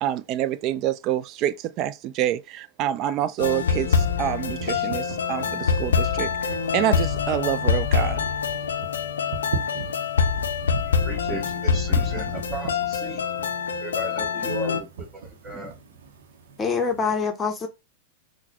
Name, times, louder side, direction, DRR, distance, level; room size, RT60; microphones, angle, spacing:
voice 1, 0.0-6.3 6.7-8.3, right 12 dB, 45° right, 0.4 m, -27 dB
sound 1, 3.4-14.8, left 6 dB, 85° left, 0.4 m, -25 dB
sound 2, 3.9-17.1, right 4 dB, 75° right, 0.7 m, -39 dB
voice 2, 10.8-13.2 13.8-15.7, right 2 dB, 15° right, 1.0 m, -36 dB
voice 3, 16.6-17.7, left 5 dB, 20° left, 0.8 m, -25 dB
3.8 x 2.1 x 2.9 m
hypercardioid pair, 105°, 0 cm